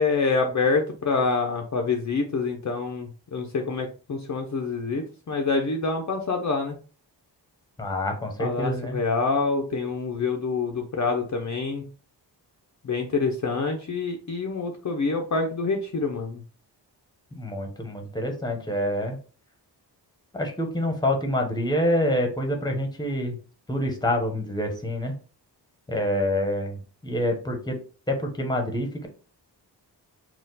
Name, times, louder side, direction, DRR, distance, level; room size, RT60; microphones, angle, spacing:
voice 1, 0.0-6.8 8.4-11.8 12.8-16.4, left 4 dB, 45° left, 3 dB, 0.6 m, -26 dB
voice 2, 7.8-9.0 17.3-19.2 20.3-23.4 23.7-25.1 25.9-27.8 28.1-29.1, left 1 dB, 10° left, 3 dB, 0.9 m, -27 dB
4.2 x 2.3 x 3.9 m, 0.37 s
wide cardioid pair, 130°, 42 cm